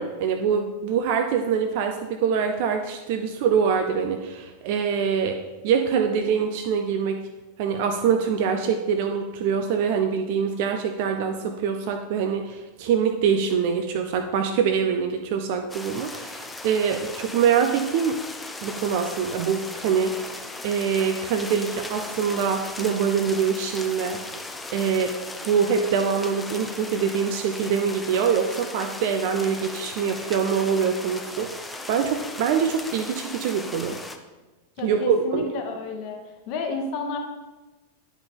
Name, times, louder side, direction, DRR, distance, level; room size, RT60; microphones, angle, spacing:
voice 1, 0.0-5.4 5.6-7.2 7.6-18.2 18.6-20.2 20.6-24.4 24.7-25.2 25.4-34.0 34.8-35.4, right 7 dB, 50° right, 5 dB, 0.5 m, -24 dB
sound 1, 15.7-34.2, left 2 dB, 10° left, 0.6 m, -37 dB
voice 2, 34.8-37.2, left 4 dB, 45° left, 4 dB, 1.0 m, -31 dB
9.7 x 5.1 x 3.8 m, 1.1 s
figure-of-eight pair, 90°, 0 cm